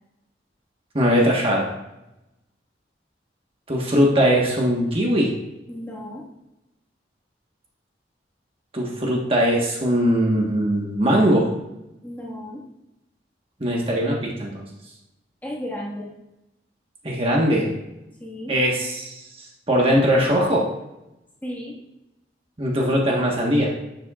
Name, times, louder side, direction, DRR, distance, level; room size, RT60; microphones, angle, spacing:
voice 1, 0.9-1.7 3.7-5.3 8.7-11.5 13.6-14.5 17.0-17.7 18.5-20.7 22.6-23.8, equal, 30° right, -2 dB, 1.4 m, -20 dB
voice 2, 5.7-6.2 12.0-12.6 15.4-16.1 18.2-18.5 21.4-21.8, equal, 10° left, -3 dB, 1.6 m, -34 dB
11.0 x 7.4 x 2.4 m, 0.91 s
head